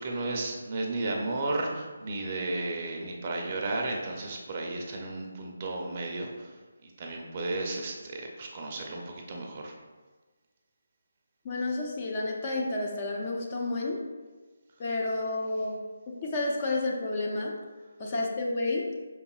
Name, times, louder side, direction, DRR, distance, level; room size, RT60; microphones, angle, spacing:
voice 1, 0.0-6.5 6.8-9.7, right 2 dB, 35° right, 0 dB, 0.6 m, -33 dB
voice 2, 11.4-14.0 14.8-15.8 16.1-17.5 18.0-18.9, left 2 dB, 30° left, -2 dB, 0.6 m, -30 dB
5.3 x 4.0 x 2.4 m, 1.3 s
figure-of-eight pair, 150°, 0 cm